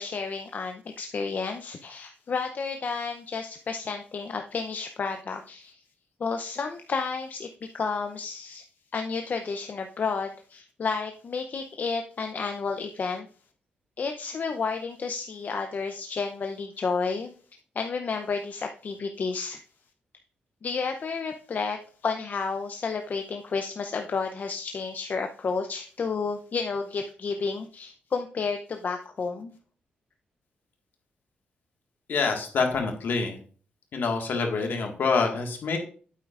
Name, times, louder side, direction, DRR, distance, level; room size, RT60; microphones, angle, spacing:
voice 1, 0.0-5.8 6.2-7.5 7.7-8.6 8.9-13.3 14.0-17.3 17.8-19.6 20.6-21.8 22.0-29.6, left 5 dB, 50° left, 6 dB, 0.6 m, -31 dB
voice 2, 32.1-33.4 33.9-35.8, left 4 dB, 70° left, 3 dB, 1.7 m, -26 dB
8.7 x 8.3 x 2.5 m, 0.42 s
cardioid pair, 80°, 4 cm